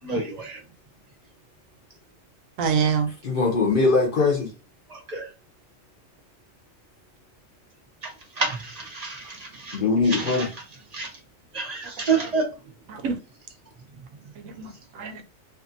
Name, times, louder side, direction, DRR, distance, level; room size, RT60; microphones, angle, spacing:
voice 1, 0.0-0.6 5.1-5.3 8.4-9.8 10.9-11.1 11.5-12.4, right 4 dB, 40° right, 0.6 m, -28 dB
voice 2, 2.6-3.1 12.1-12.3 12.9-13.2 14.4-15.2, right 6 dB, 85° right, 1.0 m, -26 dB
voice 3, 3.2-4.5 9.7-10.5, left 4 dB, 55° left, 0.7 m, -21 dB
2.6 x 2.4 x 2.5 m
omnidirectional pair, 1.3 m